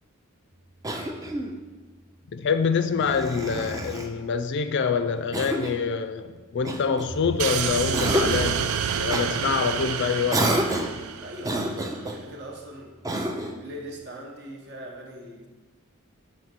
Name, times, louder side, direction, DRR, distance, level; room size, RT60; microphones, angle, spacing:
Cough, 0.8-1.6 3.0-4.1 5.3-5.9 6.7-7.5 7.9-8.6 9.1-9.3 10.3-11.0 11.4-12.2 13.0-13.6, right 1 dB, 15° right, 0.4 m, -29 dB
voice 1, 2.3-8.7 9.0-10.5, left 5 dB, 55° left, 10 dB, 0.4 m, -26 dB
sound 1, 7.4-11.8, right 7 dB, 85° right, 0.4 m, -28 dB
voice 2, 11.2-13.0 13.4-15.5, equal, 50° right, 1 dB, 1.0 m, -40 dB
6.3 x 3.2 x 5.9 m, 1.3 s
head